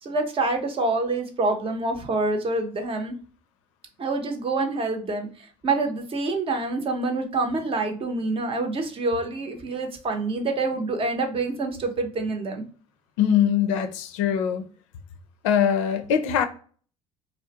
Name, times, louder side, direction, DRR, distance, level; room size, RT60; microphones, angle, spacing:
voice 1, 0.0-3.1 4.0-12.6, right 3 dB, 35° right, 0.6 m, -26 dB
voice 2, 13.2-14.7 15.4-16.5, left 8 dB, 85° left, 0.4 m, -22 dB
2.5 x 2.0 x 2.7 m
supercardioid pair, 85°, 16 cm